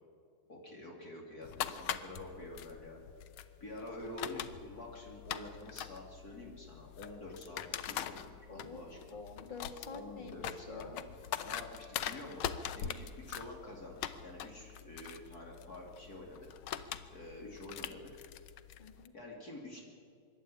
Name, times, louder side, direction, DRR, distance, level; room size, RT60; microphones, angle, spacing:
voice 1, 0.5-3.0 3.6-9.2 9.9-10.9 11.4-12.4 12.7-16.5 17.1-18.1 19.1-19.8, left 2 dB, 50° left, -1 dB, 3.4 m, -48 dB
sound 1, 1.4-19.1, left 10 dB, 80° left, 1.7 m, -43 dB
voice 2, 8.5-11.1 18.8-19.1, left 4 dB, 25° left, 5 dB, 1.9 m, -48 dB
25.0 x 12.0 x 9.9 m, 2.2 s
omnidirectional pair, 2.2 m